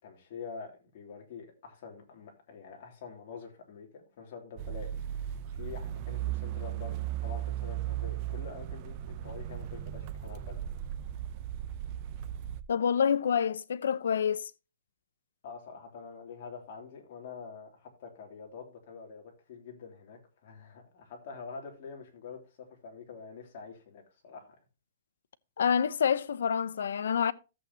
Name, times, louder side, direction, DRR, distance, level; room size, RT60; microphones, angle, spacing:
voice 1, 0.0-7.0 7.2-10.6 15.4-24.6, left 5 dB, 45° left, 3.4 m, -46 dB
sound 1, 4.6-12.6, right 12 dB, 30° right, 0.7 m, -36 dB
voice 2, 12.7-14.5 25.6-27.3, left 7 dB, 80° left, 0.8 m, -27 dB
14.0 x 8.1 x 2.9 m
hypercardioid pair, 170°, 0 cm